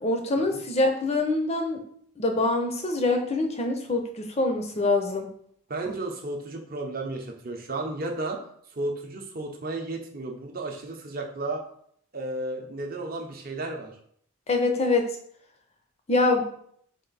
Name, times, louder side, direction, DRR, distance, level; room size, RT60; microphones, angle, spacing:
voice 1, 0.0-1.8 2.2-5.3 14.5-15.1 16.1-16.5, left 2 dB, 30° left, 4 dB, 0.5 m, -24 dB
voice 2, 5.7-8.4 8.7-11.6 12.1-14.0, right 2 dB, 40° right, 2 dB, 0.7 m, -33 dB
4.5 x 2.6 x 4.0 m, 0.66 s
head